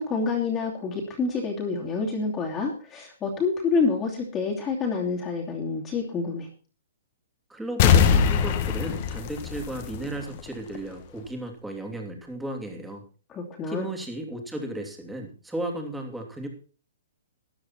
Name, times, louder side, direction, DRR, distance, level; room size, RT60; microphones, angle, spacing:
voice 1, 0.0-6.5 13.3-13.9, left 4 dB, 20° left, -2 dB, 2.8 m, -27 dB
voice 2, 7.5-13.0 13.7-16.5, right 1 dB, 5° right, 2 dB, 3.0 m, -35 dB
sound 1, 7.8-10.4 10.7-10.8, left 7 dB, 40° left, 1.7 m, -21 dB
13.5 x 10.5 x 4.3 m, 0.38 s
hypercardioid pair, 145°, 0 cm